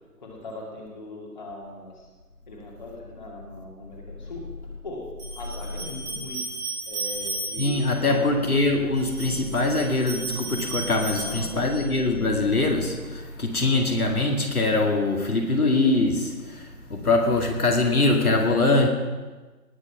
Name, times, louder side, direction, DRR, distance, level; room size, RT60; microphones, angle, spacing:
voice 1, 0.2-2.1 2.5-6.4 6.9-8.3 11.1-11.7, left 2 dB, 30° left, -2 dB, 2.3 m, -40 dB
sound 1, 3.9-4.0 5.2-8.0 8.9-12.0, right 2 dB, 15° right, 3.5 m, -34 dB
voice 2, 7.6-18.9, left 2 dB, 65° left, 1 dB, 2.2 m, -23 dB
19.0 x 6.4 x 5.8 m, 1.3 s
figure-of-eight pair, 165°, 47 cm